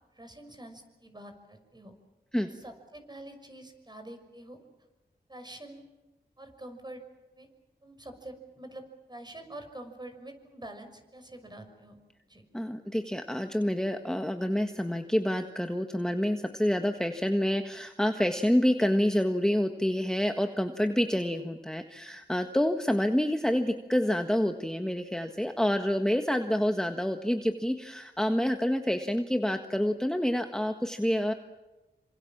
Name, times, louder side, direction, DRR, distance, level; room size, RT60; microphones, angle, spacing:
voice 1, 0.2-1.9 2.5-4.6 5.3-5.8 6.4-7.0 7.4-7.5 7.8-12.0 12.3-12.4, right 1 dB, 25° right, 6 dB, 6.1 m, -46 dB
voice 2, 12.5-31.3, equal, 5° left, 6 dB, 1.6 m, -28 dB
27.5 x 26.0 x 7.5 m, 1.1 s
wide cardioid pair, 70°, 17 cm